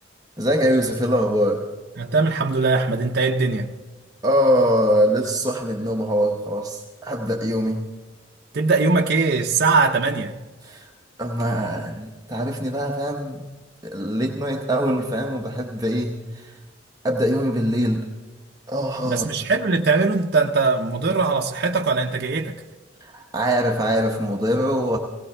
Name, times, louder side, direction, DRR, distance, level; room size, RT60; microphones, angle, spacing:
voice 1, 0.4-1.6 4.2-7.8 10.6-10.9 11.2-13.4 13.8-16.6 17.0-18.1 18.7-19.3 23.0-25.0, equal, 20° right, 1 dB, 0.8 m, -23 dB
voice 2, 2.0-3.7 8.5-10.3 19.0-22.6, right 4 dB, 55° right, 1 dB, 0.6 m, -21 dB
18.0 x 17.0 x 3.3 m, 1.2 s
head